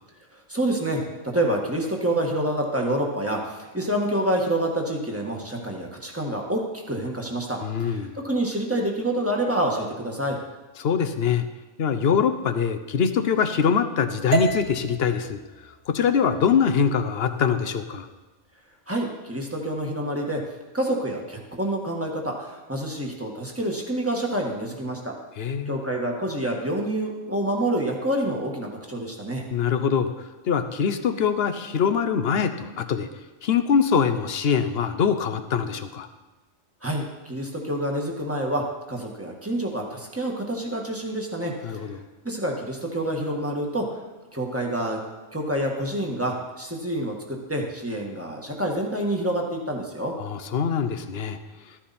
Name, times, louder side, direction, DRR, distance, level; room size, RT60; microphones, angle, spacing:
voice 1, 0.3-10.4 18.9-20.4 20.7-25.1 25.7-29.4 36.8-41.9 42.2-44.0 44.3-45.0 45.3-50.1, right 1 dB, 10° right, 0 dB, 1.6 m, -27 dB
voice 2, 7.6-8.1 10.8-11.5 11.8-15.4 15.9-18.1 25.4-25.8 29.5-30.1 30.4-33.1 33.4-36.1 41.6-42.0 50.2-51.4, left 7 dB, 55° left, 9 dB, 1.0 m, -23 dB
sound 1, 14.3-18.4, right 6 dB, 45° right, 1.6 m, -33 dB
13.5 x 10.0 x 4.3 m, 1.2 s
omnidirectional pair, 1.3 m